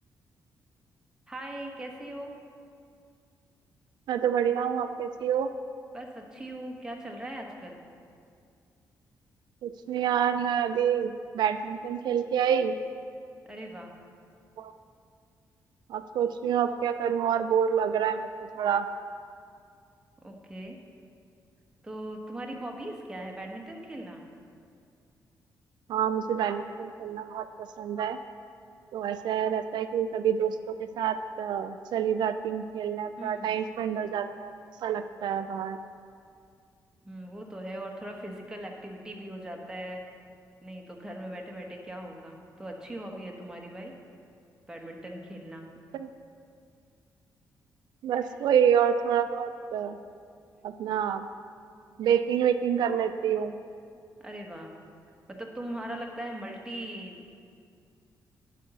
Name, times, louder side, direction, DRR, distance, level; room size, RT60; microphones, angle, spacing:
voice 1, 1.3-2.4 5.9-7.8 13.4-13.9 20.2-20.8 21.8-24.2 33.2-33.5 37.0-40.0 40.6-43.9 44.7-45.7 54.2-54.7 55.3-57.4, right 1 dB, 10° right, 0 dB, 1.2 m, -40 dB
voice 2, 4.1-5.5 9.6-12.7 14.6-14.7 15.9-18.3 18.6-18.9 25.9-28.2 28.9-34.5 34.8-35.8 45.9-46.1 48.0-50.0 50.6-51.3 52.0-53.6, right 8 dB, 80° right, 9 dB, 0.4 m, -27 dB
11.0 x 4.2 x 6.8 m, 2.3 s
cardioid pair, 110°, 7 cm